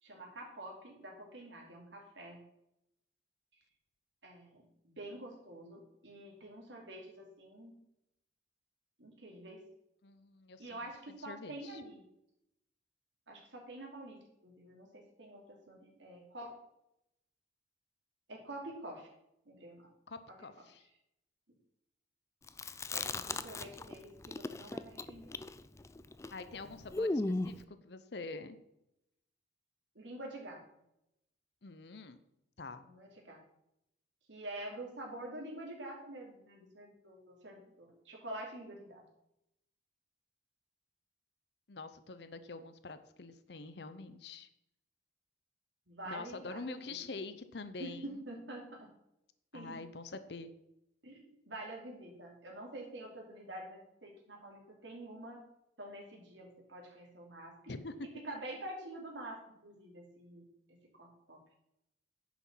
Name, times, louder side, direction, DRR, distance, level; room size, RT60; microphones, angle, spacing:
voice 1, 0.0-2.4 4.2-7.7 9.0-9.6 10.6-12.0 13.3-14.2 14.4-16.5 18.3-19.1 19.4-19.9 22.9-25.3 29.9-30.6 32.8-33.4 34.3-39.0 45.9-46.9 47.8-48.9 49.5-49.8 51.0-55.4 55.8-57.7 58.2-61.4, right 1 dB, 80° right, -1 dB, 3.0 m, -47 dB
voice 2, 10.0-10.7 11.3-11.8 20.1-20.9 26.3-28.6 31.6-32.2 32.6-32.8 41.7-44.5 46.1-48.2 49.5-50.5 57.7-58.2, left 3 dB, 60° left, 11 dB, 0.7 m, -46 dB
Chewing mastication, 22.5-23.9 24.2-27.6, left 2 dB, 15° left, 0.3 m, -36 dB
10.5 x 6.1 x 5.6 m, 0.82 s
head